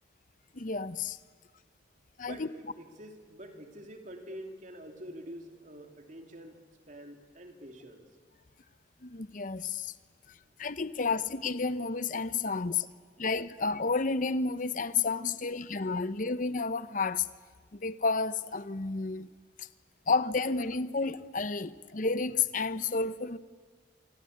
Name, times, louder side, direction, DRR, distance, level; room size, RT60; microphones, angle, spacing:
voice 1, 0.5-1.2 2.2-2.5 9.0-9.9 10.6-12.9 13.2-17.3 17.7-19.3 19.6-19.7 20.1-23.4, left 4 dB, 45° left, 0.8 m, -31 dB
voice 2, 2.2-8.1 10.8-11.1 12.5-13.4 15.4-15.5, equal, 40° right, 3.0 m, -47 dB
27.0 x 24.5 x 8.6 m
head